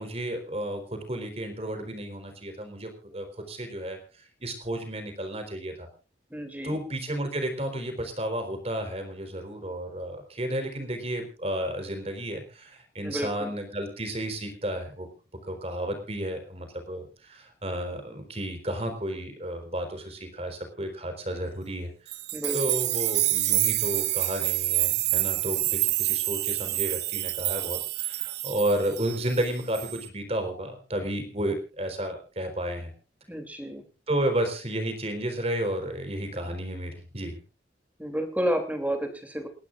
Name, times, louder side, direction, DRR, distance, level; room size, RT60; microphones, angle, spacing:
voice 1, 0.0-4.0 4.4-5.9 6.6-15.1 15.4-21.9 22.5-32.9 34.1-37.4, right 1 dB, 35° right, 6 dB, 4.0 m, -32 dB
voice 2, 6.3-6.8 13.0-13.5 22.3-22.6 33.3-33.8 38.0-39.5, equal, 10° right, 5 dB, 2.9 m, -30 dB
sound 1, 22.1-29.5 29.7-30.1, right 17 dB, 65° right, 0.8 m, -27 dB
29.5 x 12.5 x 2.5 m, 0.34 s
head